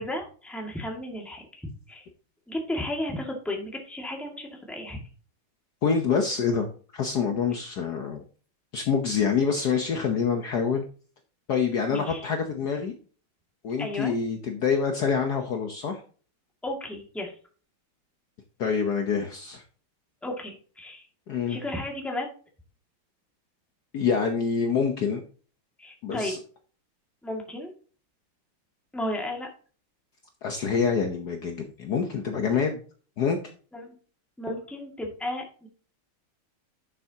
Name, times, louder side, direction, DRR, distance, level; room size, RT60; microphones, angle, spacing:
voice 1, 0.0-2.0 2.5-5.0 11.9-12.3 13.8-14.1 16.6-17.3 20.2-21.0 21.5-22.3 25.8-26.3 27.2-27.7 28.9-29.5 33.7-33.9 34.4-35.7, left 1 dB, ahead, 1 dB, 1.8 m, -34 dB
voice 2, 5.8-6.7 6.9-8.2 8.7-10.8 11.5-12.9 13.6-16.0 18.6-19.6 21.3-21.6 23.9-25.2 26.0-26.4 30.4-32.8 33.2-33.4, left 6 dB, 55° left, 4 dB, 1.4 m, -26 dB
11.0 x 6.8 x 2.8 m, 0.40 s
omnidirectional pair, 2.3 m